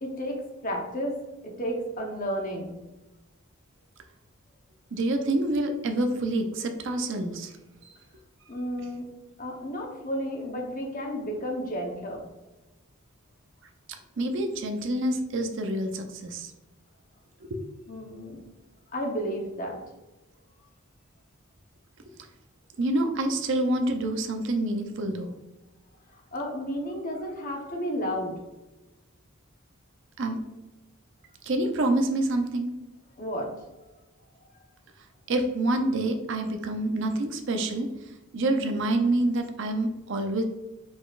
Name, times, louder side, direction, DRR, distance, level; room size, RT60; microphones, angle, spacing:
voice 1, 0.0-1.2 1.4-2.8 8.5-9.0 9.4-12.2 17.9-18.4 18.9-19.8 26.1-28.4 33.2-33.7, equal, 40° left, 0 dB, 0.9 m, -32 dB
voice 2, 4.9-7.5 14.2-16.5 17.4-17.6 22.8-25.3 30.2-30.4 31.4-32.7 35.3-37.9 38.3-40.4, right 1 dB, 55° right, 5 dB, 0.6 m, -27 dB
5.1 x 4.1 x 2.4 m, 1.1 s
head